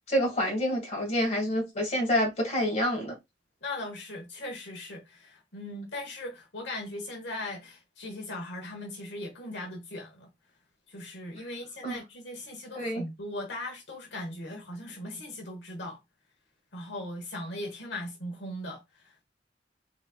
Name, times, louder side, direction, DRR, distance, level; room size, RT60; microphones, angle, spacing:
voice 1, 0.1-3.1 11.8-12.0 12.8-13.0, equal, 40° left, 1.9 m, -27 dB
voice 2, 3.6-10.3 10.9-16.0 16.7-19.1, left 1 dB, 75° left, 1.1 m, -39 dB
4.0 x 4.0 x 2.3 m
head